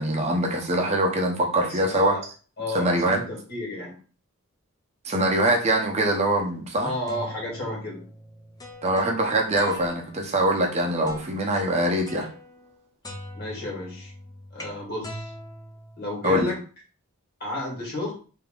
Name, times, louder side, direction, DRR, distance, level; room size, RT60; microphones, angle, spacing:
voice 1, 0.0-2.1 2.7-3.2 5.0-6.9 8.8-12.3 16.2-16.5, right 1 dB, 30° right, 1 dB, 0.8 m, -23 dB
voice 2, 1.6-2.2 2.6-3.9 6.8-8.0 13.3-14.1 14.5-15.3 16.0-16.6 17.4-18.1, left 1 dB, 45° left, -3 dB, 2.2 m, -32 dB
sound 1, 7.1-10.3 11.0-11.5 12.1-12.8 13.0-16.5, equal, 15° left, 0.7 m, -42 dB
3.5 x 2.9 x 3.7 m, 0.38 s
head